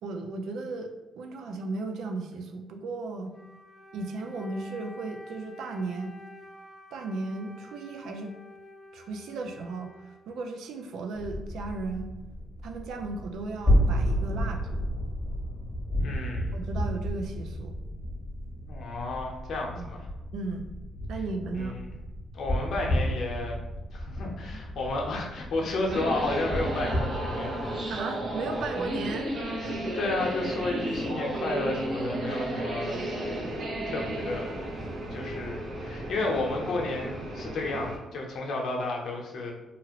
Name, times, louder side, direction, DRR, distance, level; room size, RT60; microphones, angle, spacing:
voice 1, 0.0-3.3 3.9-6.1 6.9-8.3 8.9-12.1 12.6-14.9 16.5-17.8 19.7-19.9 20.3-20.7 21.1-21.8 27.9-29.3, right 3 dB, 75° right, 4 dB, 0.4 m, -35 dB
Wind instrument woodwind instrument, 3.3-10.9, left 1 dB, 25° left, 0.3 m, -50 dB
sound 1, 11.1-27.4, equal, 10° right, 1.2 m, -31 dB
voice 2, 16.0-16.6 18.7-20.1 21.5-21.8 22.3-23.6 23.9-27.6 29.9-33.0 33.9-34.6 35.1-39.5, left 2 dB, 65° left, 0 dB, 0.7 m, -32 dB
sound 2, 25.9-38.0, right 1 dB, 55° right, 0.8 m, -33 dB
2.8 x 2.4 x 2.9 m, 1.0 s
cardioid pair, 90°, 0 cm